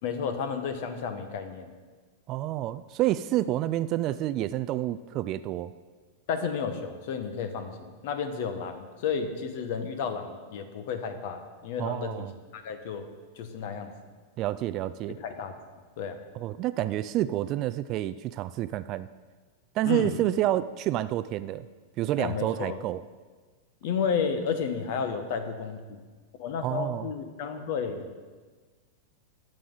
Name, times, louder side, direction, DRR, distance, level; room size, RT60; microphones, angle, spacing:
voice 1, 0.0-1.7 6.3-12.3 12.5-13.1 13.4-13.9 15.2-15.5 16.0-16.2 19.8-20.2 22.2-22.8 23.8-26.0 26.4-28.1, left 6 dB, 55° left, 8 dB, 1.4 m, -32 dB
voice 2, 2.3-5.7 11.8-12.3 14.4-15.2 16.3-19.1 19.8-21.7 22.0-23.0 26.6-27.1, right 14 dB, 35° right, 15 dB, 0.3 m, -29 dB
20.0 x 7.7 x 3.9 m, 1.4 s
supercardioid pair, 155°, 0 cm